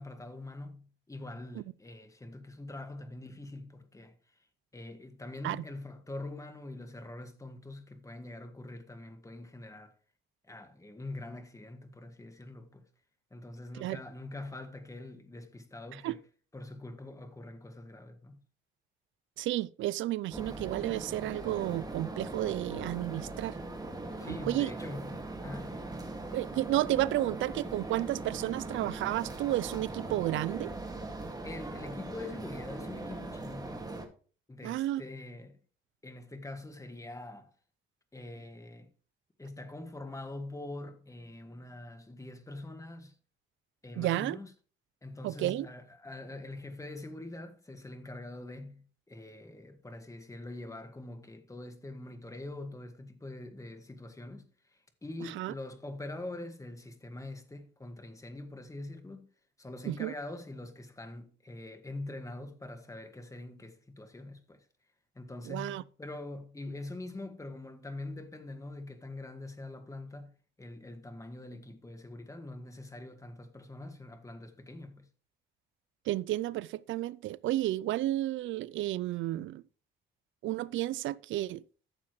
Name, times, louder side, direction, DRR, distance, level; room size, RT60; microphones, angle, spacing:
voice 1, 0.0-4.4 4.7-9.9 10.4-12.8 13.3-16.2 16.5-18.4 24.2-25.9 31.4-33.9 34.5-35.6 36.0-37.5 38.1-38.9 39.4-43.2 43.8-44.5 45.0-59.3 59.6-64.6 65.1-75.1, left 2 dB, 15° left, 1.7 m, -44 dB
voice 2, 19.4-23.6 24.3-24.7 26.3-30.7 34.6-35.0 44.0-44.4 45.2-45.7 55.2-55.5 59.8-60.1 65.5-65.8 76.1-79.6 80.4-81.6, right 15 dB, 80° right, 0.4 m, -32 dB
sound 1, 20.3-34.1, right 2 dB, 20° right, 2.1 m, -40 dB
14.0 x 7.0 x 3.1 m
cardioid pair, 90°, 20 cm